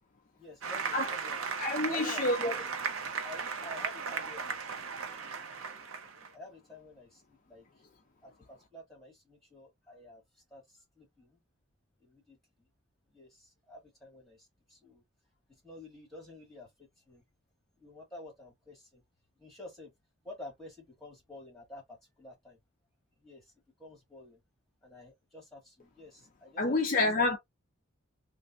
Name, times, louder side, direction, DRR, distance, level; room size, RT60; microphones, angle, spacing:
voice 1, 0.3-1.4 1.8-2.6 3.2-4.9 6.3-7.7 8.2-10.2 10.5-11.4 12.0-12.7 13.1-15.0 15.6-17.2 17.8-19.0 19.4-19.9 20.2-22.6 23.2-23.5 23.8-24.4 24.8-27.1, left 1 dB, ahead, 2.0 m, -49 dB
Applause, 0.6-6.3, right 5 dB, 70° right, 0.7 m, -36 dB
voice 2, 1.6-2.5 26.6-27.4, left 2 dB, 40° left, 0.5 m, -28 dB
3.2 x 2.6 x 2.5 m
head